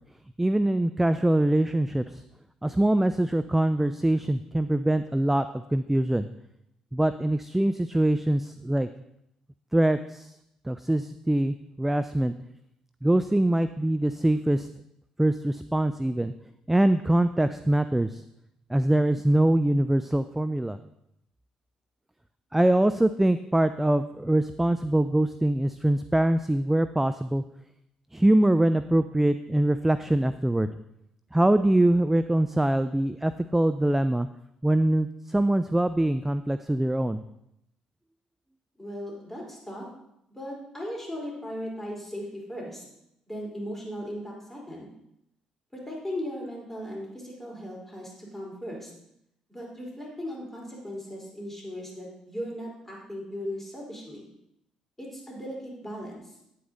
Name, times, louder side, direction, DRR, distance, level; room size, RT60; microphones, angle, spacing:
voice 1, 0.4-2.2 2.6-6.3 6.9-8.9 9.7-10.3 10.6-12.3 13.0-14.7 15.2-16.3 16.7-18.2 18.7-20.8 22.5-27.4 28.1-30.7 31.3-34.3 34.6-37.2, right 1 dB, 10° right, 11 dB, 0.4 m, -23 dB
voice 2, 38.8-39.9 40.3-42.8 43.3-44.9 45.7-48.9 49.5-54.3 55.0-56.4, equal, 10° left, -3 dB, 4.2 m, -37 dB
9.4 x 7.9 x 3.9 m, 0.80 s
hypercardioid pair, 45°, 3 cm